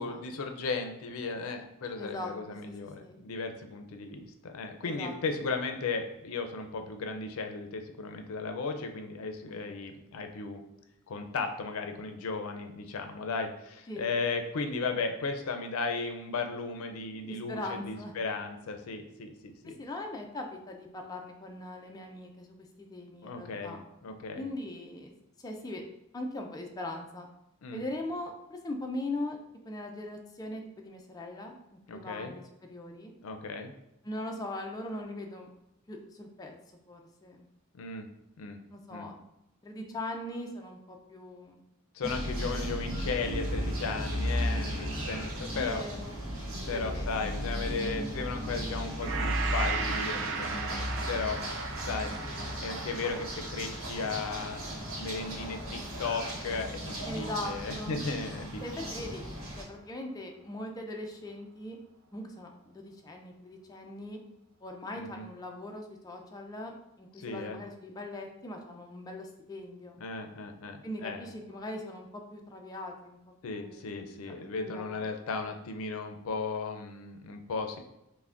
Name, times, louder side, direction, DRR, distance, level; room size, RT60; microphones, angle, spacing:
voice 1, 0.0-10.6 11.1-19.8 23.2-24.5 27.6-27.8 31.9-32.3 33.2-33.7 37.7-38.1 38.4-38.6 38.9-39.1 41.9-45.8 46.7-51.4 51.8-54.6 55.0-59.1 65.0-65.3 67.2-67.6 70.0-71.3 73.4-77.8, left 4 dB, 85° left, 5 dB, 0.5 m, -36 dB
voice 2, 2.0-2.3 2.7-3.1 4.8-5.1 9.5-9.6 13.9-14.1 17.2-18.1 19.6-23.8 24.4-25.1 25.4-25.8 26.1-27.3 27.7-32.4 32.7-33.1 34.0-35.5 35.9-36.5 36.9-37.5 38.7-39.2 39.6-41.6 45.5-46.2 46.7-47.3 57.0-58.0 58.6-59.2 59.6-61.8 62.1-64.2 64.6-70.0 70.8-73.2 73.4-73.9 74.3-74.4 74.6-75.0, left 1 dB, 20° left, 2 dB, 0.3 m, -40 dB
Birds traffic bells Rangoon in the morning, 42.0-59.6, equal, 80° right, 1.0 m, -35 dB
Gong, 49.0-57.4 57.8-58.0, right 5 dB, 60° right, 0.4 m, -38 dB
5.7 x 2.1 x 2.4 m, 0.87 s
head